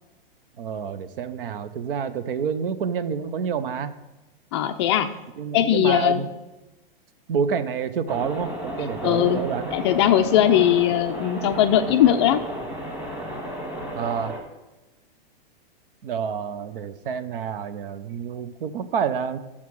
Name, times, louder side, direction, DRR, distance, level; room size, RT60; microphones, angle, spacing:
voice 1, 0.6-3.9 5.4-6.3 7.3-9.8 13.9-14.4 16.0-19.4, right 7 dB, 65° right, 13 dB, 0.8 m, -28 dB
voice 2, 4.5-5.1 5.5-6.2 9.0-9.4 9.7-12.4, left 10 dB, 30° left, 7 dB, 0.4 m, -19 dB
sound 1, 8.1-14.4, right 1 dB, 5° right, 1.5 m, -33 dB
11.5 x 7.2 x 4.7 m, 1.1 s
hypercardioid pair, 155°, 30 cm